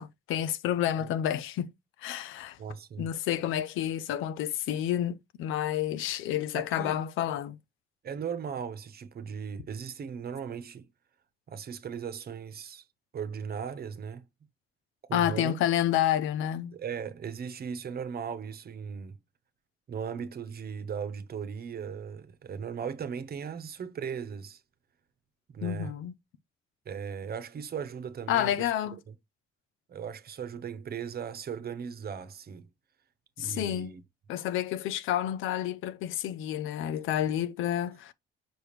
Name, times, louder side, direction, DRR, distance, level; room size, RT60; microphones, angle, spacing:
voice 1, 0.0-1.7 2.0-2.6 3.0-7.6 15.1-16.8 25.6-26.1 28.3-29.0 33.4-33.9 34.3-38.1, left 11 dB, 90° left, 0.6 m, -29 dB
voice 2, 2.6-3.1 6.5-7.0 8.0-10.9 11.5-12.9 13.1-14.3 15.1-15.6 16.7-19.2 19.9-24.6 25.5-25.9 26.8-28.7 29.1-29.2 29.9-32.7 33.4-34.0, right 7 dB, 50° right, 1.0 m, -37 dB
6.1 x 5.0 x 3.1 m
cardioid pair, 90°, 20 cm